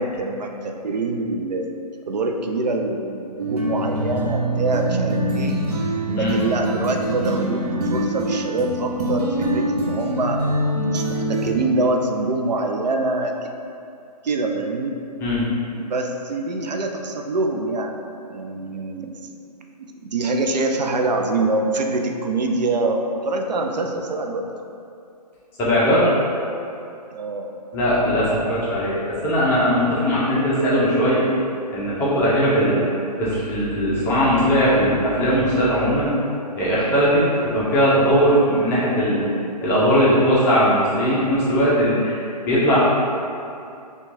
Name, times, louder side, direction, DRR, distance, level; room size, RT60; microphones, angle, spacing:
voice 1, 0.0-1.7 2.1-5.6 6.1-10.4 10.8-13.5 14.2-15.0 15.8-18.0 18.3-19.1 19.8-24.5 27.1-27.5 32.6-32.9, right 2 dB, 85° right, 3 dB, 0.4 m, -25 dB
sound 1, 3.4-11.5, right 1 dB, 65° right, 0.8 m, -24 dB
voice 2, 25.6-26.1 27.7-31.3 31.7-32.8 33.2-36.1 36.5-39.2 39.6-42.8, equal, 10° left, -9 dB, 0.5 m, -19 dB
4.3 x 2.3 x 2.6 m, 2.5 s
hypercardioid pair, 140°, 21 cm